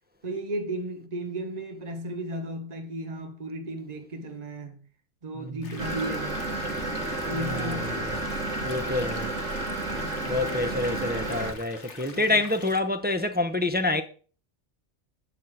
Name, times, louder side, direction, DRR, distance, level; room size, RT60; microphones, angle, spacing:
voice 1, 0.2-4.8 5.2-6.5 7.3-8.1 12.1-12.4, right 1 dB, 35° right, 1.4 m, -34 dB
sound 1, 5.6-12.8, left 4 dB, 70° left, 1.6 m, -45 dB
sound 2, 5.8-11.5, right 2 dB, 80° right, 2.4 m, -31 dB
voice 2, 7.3-8.1 8.6-9.3 10.2-14.0, left 2 dB, 10° right, 0.7 m, -27 dB
12.5 x 4.2 x 7.7 m
omnidirectional pair, 1.3 m